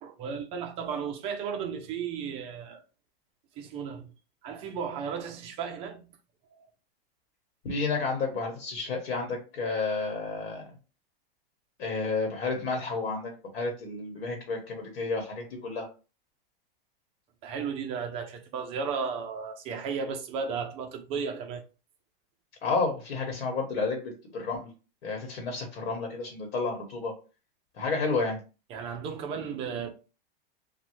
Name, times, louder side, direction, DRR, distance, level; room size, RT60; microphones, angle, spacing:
voice 1, 0.0-2.8 3.6-4.1 4.4-6.1 17.4-21.6 28.7-29.9, right 6 dB, 20° right, 0.3 m, -34 dB
voice 2, 7.6-10.7 11.8-15.9 22.6-24.7 25.0-27.1 27.8-28.4, left 3 dB, 80° left, 1.0 m, -31 dB
3.1 x 2.1 x 2.9 m
supercardioid pair, 145°, 30 cm